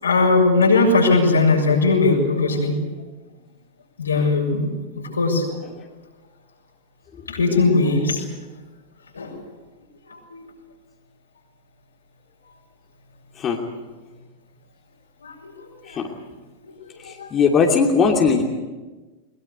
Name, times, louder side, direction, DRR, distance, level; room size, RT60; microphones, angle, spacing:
voice 1, 0.0-2.8 4.0-4.7 5.1-5.4 7.3-8.2 9.1-9.4 10.3-10.4 15.2-15.5 15.8-16.0 17.0-17.3, left 3 dB, 75° left, 1 dB, 6.8 m, -19 dB
voice 2, 7.1-7.6 13.3-13.6 15.8-16.1 17.0-18.4, left 5 dB, 25° left, 0 dB, 2.9 m, -20 dB
23.0 x 22.0 x 8.3 m, 1.2 s
figure-of-eight pair, 90°, 0 cm